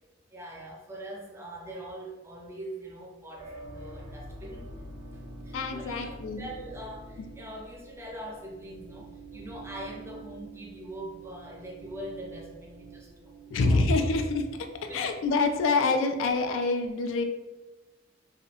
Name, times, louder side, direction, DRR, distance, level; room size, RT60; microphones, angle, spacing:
voice 1, 0.3-4.7 5.1-14.1 14.9-15.0, right 1 dB, 15° right, -2 dB, 0.4 m, -43 dB
sound 1, 3.4-15.3, right 2 dB, 90° right, 0.5 m, -46 dB
voice 2, 5.5-6.5 13.5-14.4 14.9-17.2, left 3 dB, 80° left, 6 dB, 0.3 m, -26 dB
2.6 x 2.0 x 2.7 m, 1.1 s
head